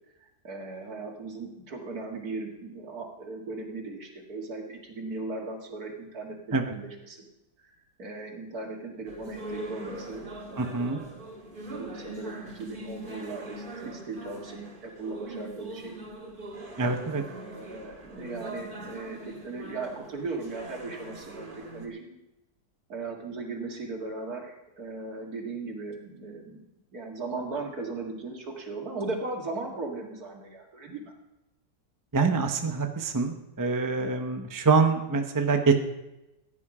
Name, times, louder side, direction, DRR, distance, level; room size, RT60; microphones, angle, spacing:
voice 1, 0.4-7.2 7.6-7.7 8.0-11.2 11.7-16.1 17.0-22.2 22.9-26.6 26.9-31.0, right 3 dB, 70° right, 2 dB, 2.5 m, -38 dB
sound 1, 9.1-21.9, right 1 dB, 35° right, 1.8 m, -42 dB
voice 2, 10.6-11.0 16.8-17.2 32.1-35.9, right 4 dB, 15° right, 5 dB, 0.8 m, -25 dB
15.5 x 10.0 x 4.9 m, 0.94 s
omnidirectional pair, 1.7 m